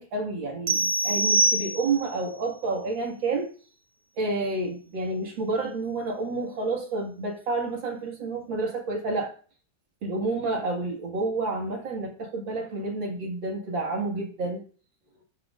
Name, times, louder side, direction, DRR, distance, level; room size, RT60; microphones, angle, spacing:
voice 1, 0.0-3.5 4.2-9.3 10.0-14.6, right 3 dB, 75° right, 1 dB, 2.7 m, -29 dB
sound 1, 0.7-2.2, right 2 dB, 50° right, 0.4 m, -24 dB
17.5 x 6.0 x 2.5 m, 0.41 s
omnidirectional pair, 2.1 m